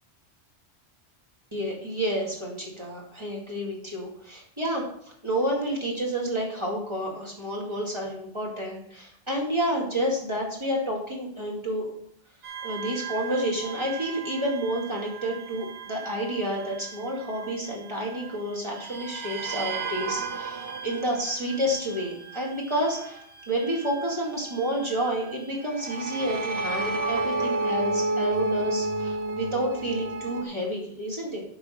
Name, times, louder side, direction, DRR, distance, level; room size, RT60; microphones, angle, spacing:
voice 1, 1.5-4.9 5.2-12.0 12.6-31.4, equal, 25° right, -2 dB, 2.2 m, -30 dB
sound 1, 12.4-18.4 18.7-30.4, right 2 dB, 60° right, 1.1 m, -33 dB
10.0 x 3.7 x 6.4 m, 0.66 s
omnidirectional pair, 1.2 m